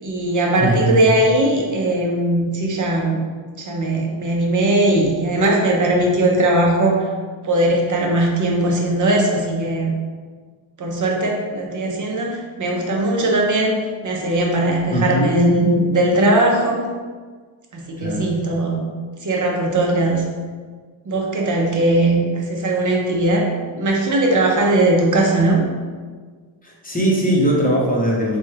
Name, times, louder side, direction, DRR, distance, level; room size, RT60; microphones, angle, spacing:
voice 1, 0.0-3.2 3.6-7.0 7.4-9.9 10.8-13.7 14.0-16.8 17.7-18.9 19.2-20.2 21.1-25.6, right 1 dB, 40° right, -1 dB, 0.6 m, -19 dB
voice 2, 0.6-0.9 14.9-15.3 18.0-18.3 26.6-28.4, right 1 dB, 15° left, -4 dB, 0.8 m, -20 dB
4.2 x 2.3 x 3.2 m, 1.5 s
cardioid pair, 115°, 49 cm